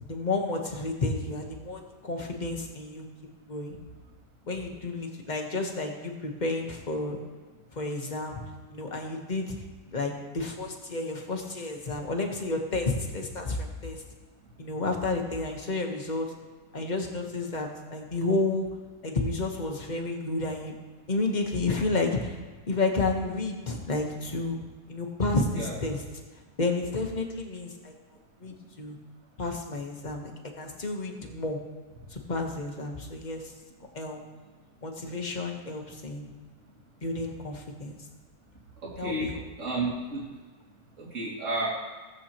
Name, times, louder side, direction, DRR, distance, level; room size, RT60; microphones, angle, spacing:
voice 1, 0.0-3.1 3.5-3.8 4.5-7.2 7.7-8.4 8.7-9.6 9.9-14.0 14.6-16.3 16.7-18.7 19.0-20.7 21.1-22.4 22.7-24.6 24.9-26.0 26.6-27.9 28.4-29.0 29.4-31.6 32.1-33.5 33.9-34.2 34.8-36.3 37.0-38.0 38.9-39.4, left 3 dB, 30° left, 2 dB, 1.2 m, -31 dB
voice 2, 38.8-40.2 41.0-41.7, right 2 dB, 50° right, -5 dB, 2.6 m, -32 dB
17.0 x 7.9 x 3.0 m, 1.4 s
omnidirectional pair, 1.7 m